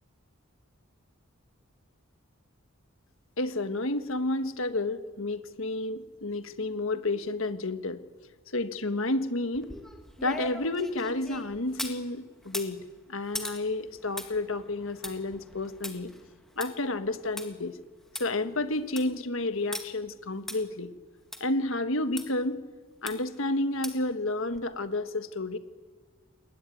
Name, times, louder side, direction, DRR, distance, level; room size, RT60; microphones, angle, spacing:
voice 1, 3.4-8.0 8.5-9.7 10.2-12.8 13.1-16.1 16.6-17.8 18.2-20.9 21.4-22.6 23.0-25.6, left 2 dB, 65° left, 10 dB, 1.5 m, -30 dB
sound 1, 9.5-12.0 12.4-17.5 17.8-17.9 18.1-18.2 18.7-19.1 19.7-19.8 20.5-20.6 21.3-21.4 22.2-22.3 23.1-23.4 23.8-24.1 24.5-24.6, left 1 dB, ahead, 2.0 m, -40 dB
21.0 x 20.0 x 9.4 m, 1.5 s
head